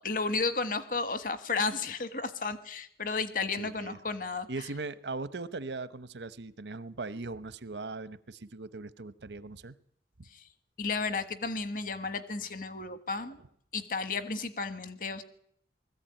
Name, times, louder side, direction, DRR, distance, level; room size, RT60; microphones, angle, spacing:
voice 1, 0.0-4.5 10.3-10.4 10.8-13.4 13.7-15.2, left 4 dB, 50° left, 1.4 m, -33 dB
voice 2, 3.6-4.0 4.5-9.7 10.2-10.3, right 3 dB, 80° right, 0.9 m, -39 dB
20.5 x 14.5 x 8.9 m
head